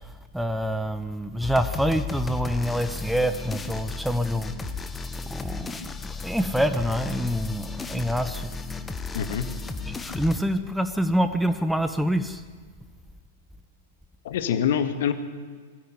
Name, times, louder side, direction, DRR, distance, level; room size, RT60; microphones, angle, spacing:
voice 1, 0.3-4.5 5.3-5.9 6.2-8.5 9.9-12.4, equal, ahead, 9 dB, 1.2 m, -26 dB
sound 1, 1.4-10.4, left 4 dB, 15° left, 1.7 m, -34 dB
voice 2, 9.1-9.5 14.2-15.1, left 8 dB, 60° left, 9 dB, 2.1 m, -25 dB
21.5 x 16.5 x 9.8 m, 1.6 s
figure-of-eight pair, 100°, 0 cm